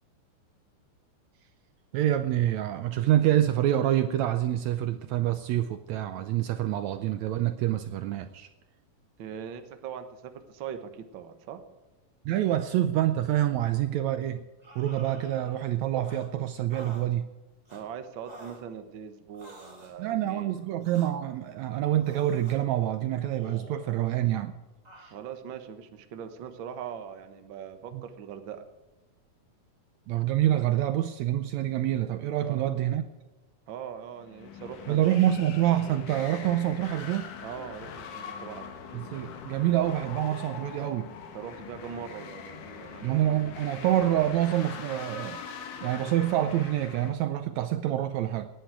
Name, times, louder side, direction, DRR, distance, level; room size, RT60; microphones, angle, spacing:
voice 1, 1.9-8.5 12.3-14.5 14.8-17.3 20.0-24.6 25.0-25.1 27.9-28.0 30.1-33.0 34.9-37.3 38.9-41.1 43.0-45.4 45.8-48.5, right 12 dB, 75° right, 9 dB, 1.8 m, -27 dB
voice 2, 9.2-11.6 17.7-20.7 25.1-28.6 32.4-32.6 33.7-35.3 37.4-39.0 41.3-43.3, right 8 dB, 55° right, 7 dB, 1.4 m, -41 dB
sound 1, 14.6-15.7 16.1-16.3 16.7-17.1 17.6-17.8 18.2-18.6 19.3-20.0 20.8-21.1 22.0-22.6 23.3-24.1 24.8-25.1, right 1 dB, 15° right, 1.7 m, -49 dB
sound 2, 34.2-47.1, left 7 dB, 85° left, 2.9 m, -42 dB
18.0 x 10.5 x 4.8 m, 1.1 s
omnidirectional pair, 3.6 m